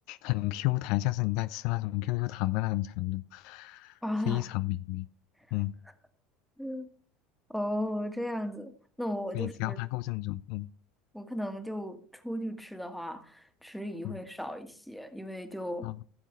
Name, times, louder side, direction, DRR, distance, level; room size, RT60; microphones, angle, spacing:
voice 1, 0.1-4.0 4.3-5.1 5.5-5.7 9.3-10.7 14.0-14.2 15.8-16.0, left 19 dB, 65° left, 0.4 m, -31 dB
voice 2, 4.0-4.5 6.6-6.9 7.5-8.7 9.0-9.8 11.1-15.9, equal, ahead, 1.7 m, -35 dB
15.5 x 7.3 x 3.3 m
hypercardioid pair, 75°, 0 cm